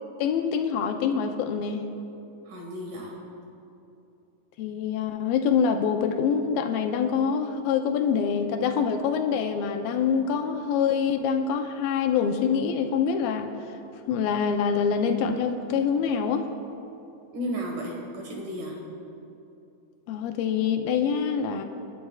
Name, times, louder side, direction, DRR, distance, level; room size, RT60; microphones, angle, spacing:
voice 1, 0.2-1.9 4.6-13.5 14.1-16.5 20.1-21.6, left 6 dB, 90° left, 5 dB, 2.5 m, -25 dB
voice 2, 2.5-3.1 17.3-18.8, equal, 65° right, -1 dB, 3.1 m, -33 dB
28.0 x 11.0 x 2.4 m, 2.8 s
omnidirectional pair, 4.1 m